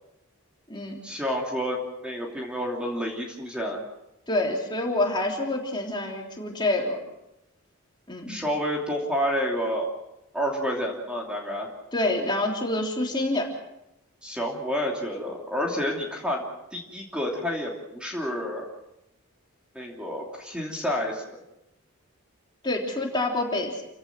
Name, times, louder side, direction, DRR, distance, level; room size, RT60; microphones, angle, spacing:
voice 1, 1.0-3.8 8.3-9.9 10.3-11.7 14.2-16.4 16.7-18.6 19.7-21.2, equal, 5° right, -1 dB, 2.9 m, -29 dB
voice 2, 4.3-7.0 8.1-8.4 11.9-13.5 22.6-23.8, left 2 dB, 20° left, 0 dB, 3.3 m, -27 dB
29.0 x 16.5 x 6.1 m, 0.89 s
head